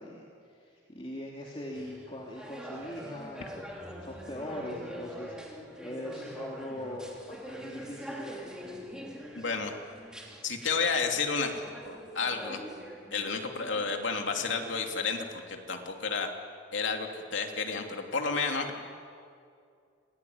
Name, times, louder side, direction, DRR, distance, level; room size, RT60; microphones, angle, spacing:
voice 1, 0.0-3.6 4.0-5.4 5.8-8.6, left 1 dB, 30° left, -3 dB, 2.9 m, -41 dB
sound 1, 1.7-15.6, equal, 5° right, 3.1 m, -44 dB
voice 2, 9.3-9.7 10.4-12.6 13.1-16.3 16.7-18.7, left 4 dB, 75° left, 3 dB, 2.9 m, -31 dB
28.0 x 20.5 x 9.7 m, 2.4 s
head